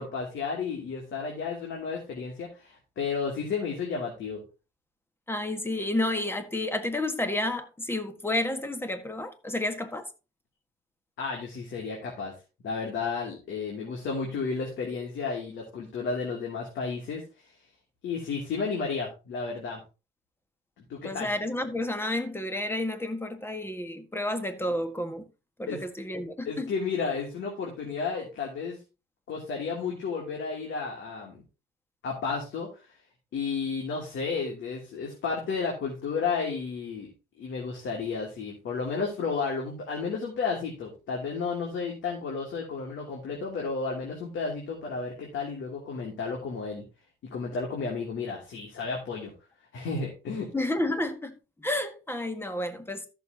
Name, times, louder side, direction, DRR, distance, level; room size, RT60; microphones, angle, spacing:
voice 1, 0.0-4.4 11.2-12.3 12.6-17.5 18.0-19.8 20.8-21.3 25.7-25.8 26.4-28.8 29.3-31.4 32.0-32.9 33.3-46.8 47.3-49.3 49.7-50.5, left 5 dB, 75° left, 3.0 m, -32 dB
voice 2, 5.3-10.1 21.0-25.3 25.6-26.7 50.5-53.1, left 1 dB, 10° left, 1.6 m, -31 dB
14.0 x 6.9 x 2.9 m
cardioid pair, 90°, 20 cm